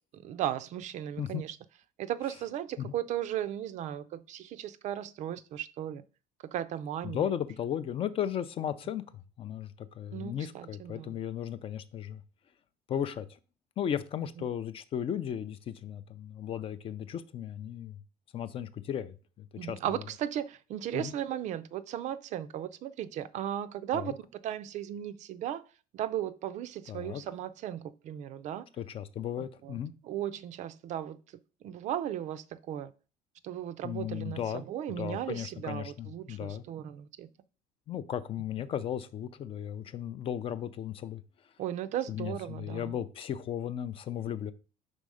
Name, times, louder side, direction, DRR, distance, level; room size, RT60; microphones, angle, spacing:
voice 1, 0.1-1.6 2.0-6.0 6.4-7.3 10.1-11.1 19.6-25.6 25.9-28.7 29.4-29.8 30.0-31.2 31.6-32.9 33.4-37.3 41.6-43.0, right 11 dB, 50° right, 0.4 m, -36 dB
voice 2, 7.0-9.0 9.4-12.2 12.9-13.3 13.8-18.0 18.3-19.8 20.9-21.1 23.9-24.1 26.9-27.2 28.8-29.9 33.8-34.6 35.0-36.6 37.9-41.2 42.1-44.5, left 9 dB, 35° left, 0.4 m, -35 dB
5.3 x 3.8 x 4.8 m
cardioid pair, 155°, 16 cm